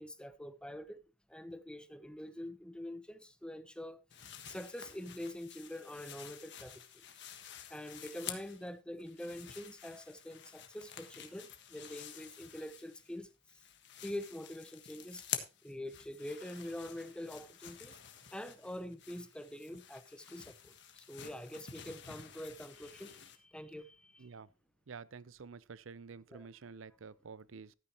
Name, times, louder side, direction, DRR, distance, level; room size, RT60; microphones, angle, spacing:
voice 1, 0.0-4.0 4.5-6.8 7.7-13.3 14.0-15.2 15.6-18.0 18.3-24.3 26.3-26.5, left 1 dB, 5° left, 0.7 m, -45 dB
sound 1, 4.1-8.7 9.0-13.2 13.5-23.4, left 9 dB, 60° left, 1.5 m, -49 dB
voice 2, 24.2-24.5 24.9-27.7, right 5 dB, 70° right, 0.6 m, -50 dB
13.5 x 9.3 x 3.0 m
head